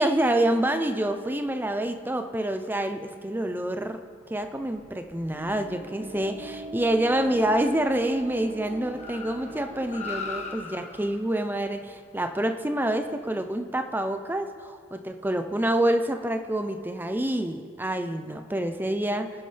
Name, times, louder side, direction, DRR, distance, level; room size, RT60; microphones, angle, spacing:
voice 1, 0.0-4.0 4.3-19.3, right 1 dB, 10° right, 7 dB, 0.6 m, -27 dB
Car, 4.1-13.7, left 5 dB, 35° left, 1.2 m, -44 dB
sound 1, 5.3-10.5, right 2 dB, 40° right, 1.2 m, -42 dB
25.5 x 9.7 x 3.4 m, 2.1 s
head